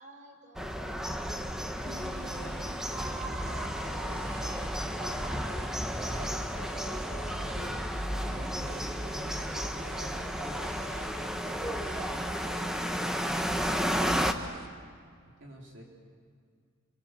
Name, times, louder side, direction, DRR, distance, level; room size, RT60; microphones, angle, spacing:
voice 1, 0.0-2.9 3.8-5.4 5.8-6.2 6.8-11.3, right 1 dB, 40° right, 3 dB, 3.8 m, -52 dB
sound 1, 0.6-14.3, equal, 5° right, 1.2 m, -33 dB
sound 2, 1.9-14.7, right 4 dB, 85° right, 2.1 m, -47 dB
voice 2, 15.4-15.8, right 1 dB, 60° right, -1 dB, 3.6 m, -50 dB
28.0 x 24.0 x 7.6 m, 2.1 s
head